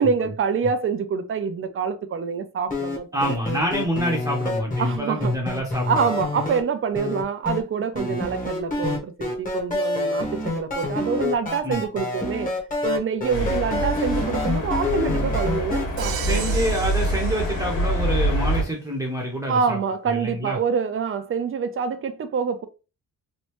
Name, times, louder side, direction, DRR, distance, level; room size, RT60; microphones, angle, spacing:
voice 1, 0.0-3.3 4.8-5.3 5.9-12.5 12.8-16.6 19.5-22.7, right 6 dB, 40° right, 0.5 m, -26 dB
sound 1, 2.7-6.6 6.9-7.6 7.9-15.8, left 2 dB, 25° left, 1.1 m, -27 dB
voice 2, 3.1-5.9 8.1-8.2 11.6-11.8 13.3-13.5 16.2-19.8 20.1-20.6, equal, 10° right, 0.8 m, -27 dB
sound 2, 13.3-18.6, equal, 60° left, 1.7 m, -25 dB
Crash cymbal, 16.0-18.2, right 10 dB, 90° right, 0.5 m, -35 dB
3.2 x 2.6 x 3.0 m
cardioid pair, 130°, 35 cm